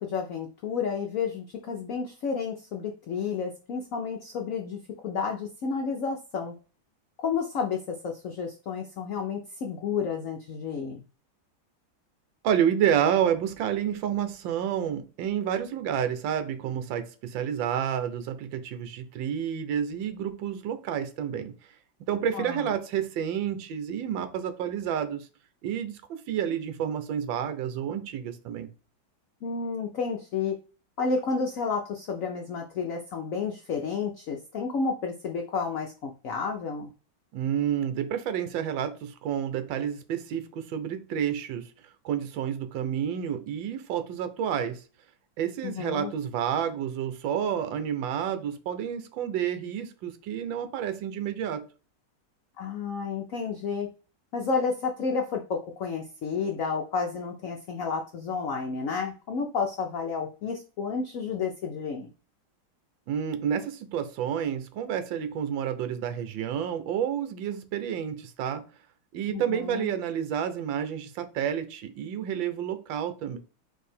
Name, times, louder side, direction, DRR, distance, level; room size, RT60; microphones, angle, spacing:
voice 1, 0.0-6.5 7.2-11.0 22.3-22.7 29.4-30.5 31.0-36.9 45.6-46.1 52.6-53.9 54.3-62.1 69.3-69.9, left 5 dB, 65° left, 0.8 m, -31 dB
voice 2, 12.4-21.5 22.1-25.3 25.6-28.7 37.3-41.7 42.0-44.8 45.4-51.6 63.1-68.6 69.1-73.4, right 9 dB, 80° right, 1.5 m, -29 dB
4.6 x 2.7 x 4.2 m
omnidirectional pair, 2.1 m